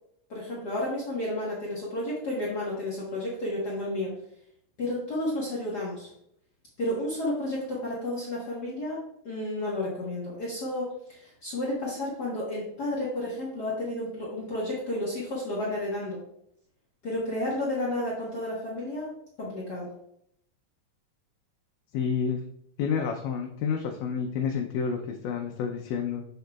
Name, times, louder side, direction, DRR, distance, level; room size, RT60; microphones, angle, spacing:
voice 1, 0.3-4.1 4.8-6.1 6.8-16.2 17.0-19.1 19.4-19.9, left 1 dB, 65° left, -5 dB, 1.0 m, -31 dB
voice 2, 21.9-22.4 22.8-26.3, left 6 dB, 80° left, 2 dB, 2.2 m, -29 dB
6.9 x 6.5 x 2.3 m, 0.72 s
omnidirectional pair, 3.8 m